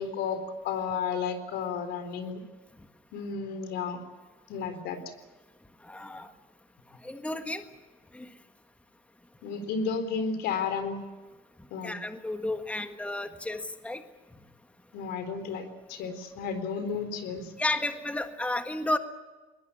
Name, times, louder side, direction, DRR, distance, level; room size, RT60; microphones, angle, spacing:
voice 1, 0.0-2.4 3.1-4.0 4.5-5.0 9.4-11.1 11.7-12.0 14.9-17.5, left 5 dB, 85° left, 9 dB, 4.0 m, -32 dB
voice 2, 5.8-6.3 7.0-7.6 8.1-8.3 11.8-14.0 17.6-19.0, left 1 dB, 10° left, 7 dB, 1.6 m, -32 dB
21.0 x 20.5 x 8.4 m, 1.2 s
cardioid pair, 110°, 17 cm